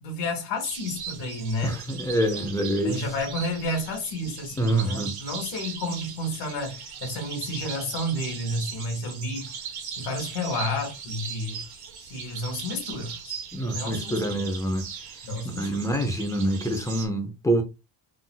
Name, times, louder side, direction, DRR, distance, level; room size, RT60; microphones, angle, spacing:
voice 1, 0.0-1.7 2.8-9.6 10.0-11.6 12.0-13.3 13.7-14.4 15.2-15.8, left 1 dB, 65° left, 1.7 m, -31 dB
sound 1, 0.6-17.1, right 7 dB, 55° right, 1.1 m, -39 dB
voice 2, 1.6-3.0 4.6-5.1 13.5-14.8 15.6-17.6, right 1 dB, 5° left, 0.5 m, -26 dB
3.9 x 2.5 x 2.2 m
cardioid pair, 135°, 45 cm